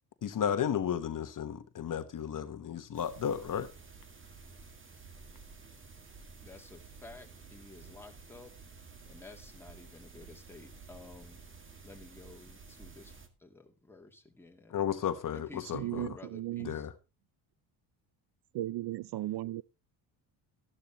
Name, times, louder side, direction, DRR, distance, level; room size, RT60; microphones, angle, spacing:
voice 1, 0.2-3.7 14.7-16.2 16.6-16.9, left 8 dB, 40° left, 1.1 m, -33 dB
sound 1, 2.9-13.3, right 4 dB, 25° right, 2.0 m, -52 dB
voice 2, 6.4-8.5 8.8-11.4 11.8-13.1 13.4-14.8 15.3-16.9, left 3 dB, 5° left, 2.6 m, -52 dB
voice 3, 15.7-16.7 18.5-19.6, right 15 dB, 60° right, 0.5 m, -36 dB
13.5 x 11.5 x 3.0 m
cardioid pair, 95°, 47 cm